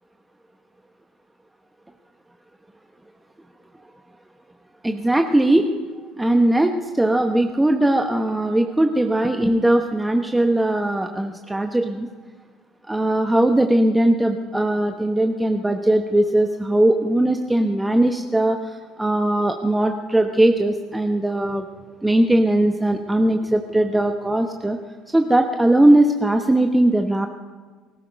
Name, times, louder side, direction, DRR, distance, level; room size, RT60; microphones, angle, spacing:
voice 1, 4.8-5.7 6.2-12.1 12.9-21.7 22.0-24.8 25.1-27.3, right 1 dB, 10° right, 5 dB, 1.0 m, -19 dB
20.0 x 13.5 x 5.2 m, 1.4 s
hypercardioid pair, 70°, 0 cm